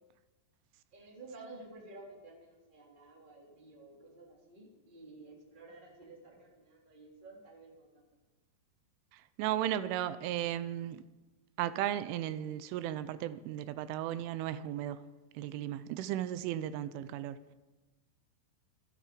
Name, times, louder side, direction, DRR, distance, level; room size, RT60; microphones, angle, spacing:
voice 1, 0.9-8.1, right 2 dB, 15° right, -1 dB, 2.5 m, -52 dB
voice 2, 9.1-11.0 11.6-15.0 15.3-17.4, right 12 dB, 85° right, 13 dB, 3.2 m, -35 dB
26.5 x 10.0 x 5.2 m, 1.1 s
omnidirectional pair, 5.6 m